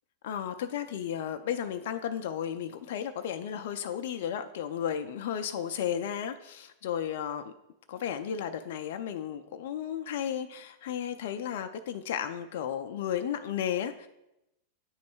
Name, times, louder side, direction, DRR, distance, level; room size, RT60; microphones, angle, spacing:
voice 1, 0.2-7.5 7.9-14.1, left 9 dB, 70° left, 8 dB, 0.4 m, -34 dB
9.4 x 3.1 x 4.5 m, 0.88 s
hypercardioid pair, 115°, 0 cm